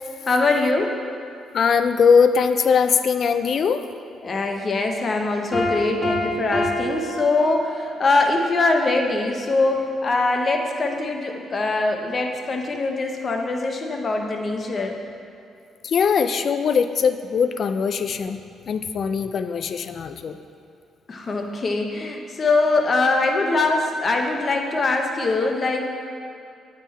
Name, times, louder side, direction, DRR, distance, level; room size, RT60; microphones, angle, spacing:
voice 1, 0.3-1.0 4.2-15.0 21.1-25.8, left 3 dB, 40° left, 2 dB, 0.7 m, -22 dB
voice 2, 1.5-3.9 15.8-18.4 18.7-20.4, left 6 dB, 55° left, 9 dB, 0.3 m, -20 dB
Piano, 5.5-8.1, left 1 dB, ahead, 1.4 m, -27 dB
8.1 x 3.8 x 4.1 m, 2.5 s
cardioid pair, 90°, 0 cm